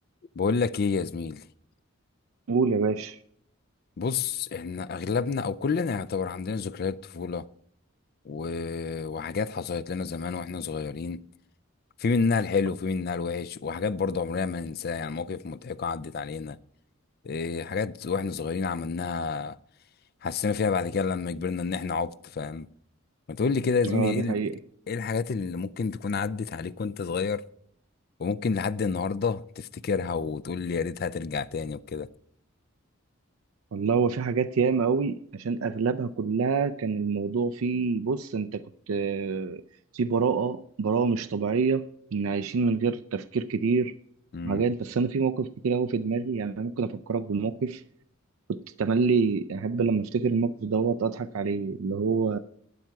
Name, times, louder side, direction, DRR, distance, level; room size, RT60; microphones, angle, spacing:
voice 1, 0.4-1.4 4.0-7.4 8.3-11.2 12.0-16.6 17.2-19.6 20.2-22.7 23.3-24.3 24.9-27.4 28.2-32.1 44.3-44.6, left 5 dB, 45° left, 0.4 m, -29 dB
voice 2, 2.5-3.2 23.8-24.5 33.7-39.6 39.9-43.9 44.4-47.8 48.5-52.4, right 5 dB, 80° right, 0.4 m, -26 dB
12.0 x 9.1 x 4.7 m
head